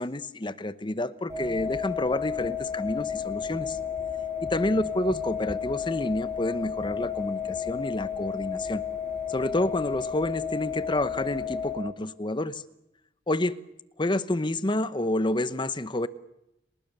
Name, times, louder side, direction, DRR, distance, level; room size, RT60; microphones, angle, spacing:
voice 1, 0.0-3.8 4.4-8.8 9.3-12.6 13.3-13.6 14.0-16.1, left 1 dB, 25° left, 14 dB, 0.9 m, -29 dB
sound 1, 1.3-11.7, left 7 dB, 15° right, 5.4 m, -32 dB
30.0 x 20.0 x 6.8 m, 0.87 s
head